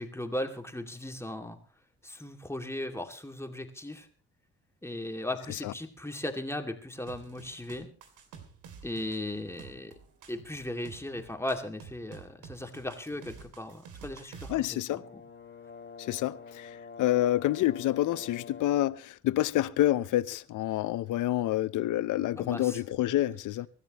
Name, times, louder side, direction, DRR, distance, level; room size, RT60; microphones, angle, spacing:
voice 1, 0.0-1.6 2.0-4.1 4.8-7.9 8.8-9.9 10.3-15.2 22.3-22.8, left 1 dB, 10° left, 2.3 m, -37 dB
sound 1, 7.1-14.7, right 6 dB, 85° right, 2.9 m, -49 dB
voice 2, 14.5-15.0 16.0-23.7, left 14 dB, 80° left, 0.8 m, -28 dB
Brass instrument, 14.9-19.1, left 5 dB, 40° left, 2.6 m, -46 dB
25.0 x 13.0 x 3.0 m
cardioid pair, 90°, 30 cm